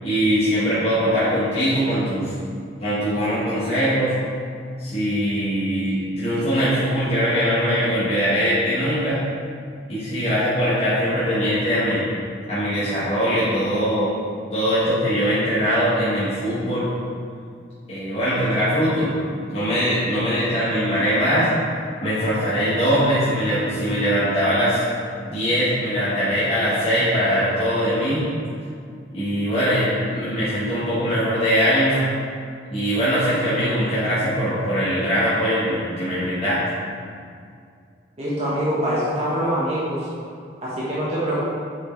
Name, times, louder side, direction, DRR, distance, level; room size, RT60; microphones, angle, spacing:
voice 1, 0.0-2.3 2.8-4.1 4.8-9.2 9.9-12.0 12.5-14.1 14.5-16.9 17.9-19.1 19.5-21.5 22.0-24.8 25.2-28.3 29.1-32.1 32.7-36.6, equal, 30° left, -12 dB, 1.6 m, -21 dB
voice 2, 38.2-40.0 40.6-41.4, equal, 35° right, -9 dB, 1.4 m, -24 dB
7.3 x 4.9 x 4.7 m, 2.3 s
head